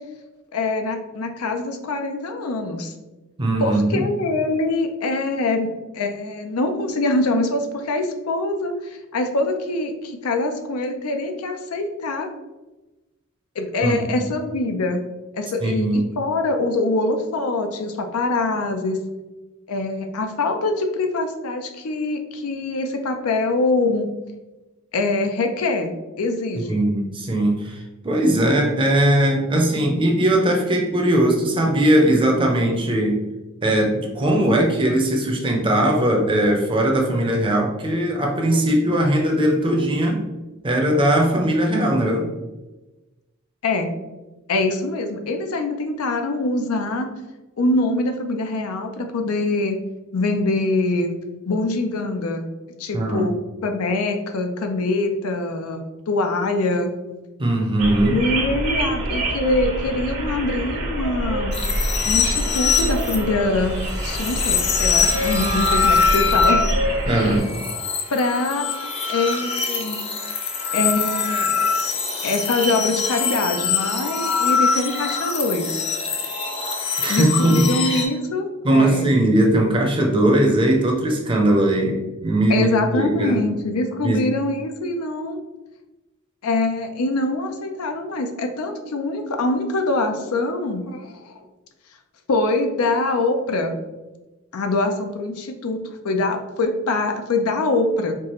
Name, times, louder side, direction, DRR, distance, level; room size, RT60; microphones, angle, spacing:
voice 1, 0.5-2.9 3.6-12.3 13.6-15.0 15.3-19.0 19.7-24.1 24.9-25.9 26.2-26.8 43.6-43.9 44.5-47.1 47.6-49.8 50.1-51.1 51.5-52.5 52.8-53.3 53.6-56.9 58.0-61.6 62.0-63.8 64.0-66.7 67.1-67.4 68.1-70.0 70.7-71.5 72.2-75.8 77.1-79.1 82.5-85.4 86.4-91.4 92.3-93.7 94.5-98.1, left 2 dB, 85° left, 5 dB, 0.5 m, -24 dB
voice 2, 3.4-4.0 13.8-14.2 15.6-16.0 26.6-33.3 33.6-40.2 40.6-42.3 52.9-53.3 57.4-58.1 67.0-67.5 77.0-77.6 78.6-83.4 84.0-84.2, right 1 dB, 25° right, 1 dB, 0.6 m, -19 dB
sound 1, 57.8-67.4, right 1 dB, 80° right, 1.4 m, -26 dB
sound 2, 61.5-78.0, left 5 dB, 30° left, 0.5 m, -23 dB
4.5 x 2.4 x 3.0 m, 1.1 s
head